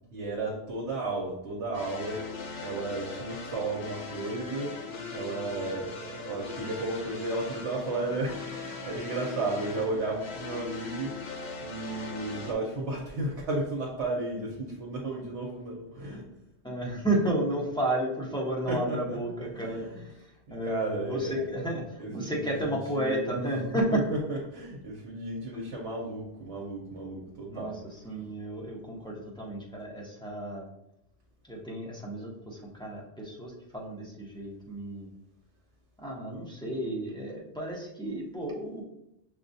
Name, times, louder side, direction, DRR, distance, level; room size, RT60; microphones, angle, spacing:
voice 1, 0.1-16.3 18.7-19.2 19.5-20.0 20.7-21.4 22.0-23.3 23.9-27.8, right 2 dB, 75° right, -3 dB, 1.0 m, -34 dB
sound 1, 1.7-12.5, left 4 dB, 70° left, 0.9 m, -40 dB
voice 2, 16.6-24.0 27.4-30.7 31.5-35.1 36.0-38.8, right 1 dB, 5° left, -4 dB, 0.6 m, -32 dB
6.2 x 2.3 x 2.6 m, 0.82 s
omnidirectional pair, 1.2 m